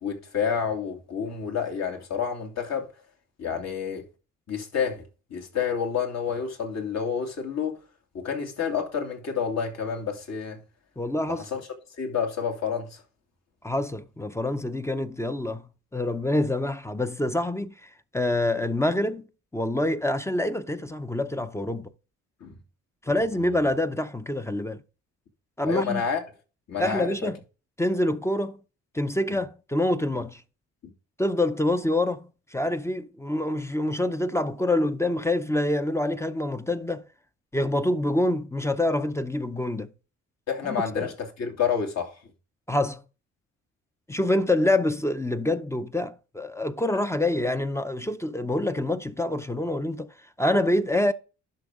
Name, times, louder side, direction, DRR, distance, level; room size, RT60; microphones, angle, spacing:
voice 1, 0.0-2.9 3.4-4.0 4.5-5.0 5.3-7.8 8.1-10.6 11.3-11.6 12.0-13.0 22.4-22.5 23.3-23.6 25.6-26.2 26.7-27.3 29.3-29.4 40.5-42.2, left 7 dB, 60° left, 2.5 m, -29 dB
voice 2, 11.0-11.4 13.6-19.3 19.5-21.9 23.0-24.8 25.6-26.0 26.8-27.4 27.8-28.6 28.9-30.4 31.2-37.1 37.5-39.9 40.6-41.1 42.7-43.0 44.1-50.1 50.4-51.1, left 1 dB, 10° left, 0.6 m, -26 dB
10.5 x 6.2 x 3.7 m
cardioid pair, 90°, 30 cm